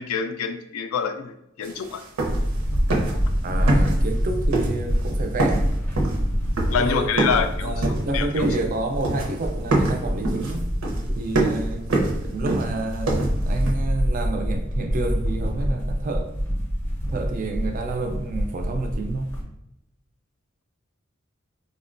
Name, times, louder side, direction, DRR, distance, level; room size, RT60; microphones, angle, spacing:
voice 1, 0.0-2.0 6.7-8.4, left 6 dB, 85° left, 9 dB, 0.3 m, -27 dB
sound 1, 1.6-1.7 2.0-2.6 2.9-3.3 3.7-4.2 4.5-5.1 5.4-7.5 7.8-8.8 9.0-9.4 9.7-13.7, right 2 dB, 85° right, 0.6 m, -25 dB
sound 2, 2.2-19.4, equal, 10° left, 0.6 m, -26 dB
voice 2, 3.4-5.7 6.8-7.3 7.6-10.7 11.1-11.8 12.2-16.3 17.1-19.3, right 2 dB, 40° right, 5 dB, 0.4 m, -29 dB
3.7 x 2.1 x 2.5 m, 0.83 s
head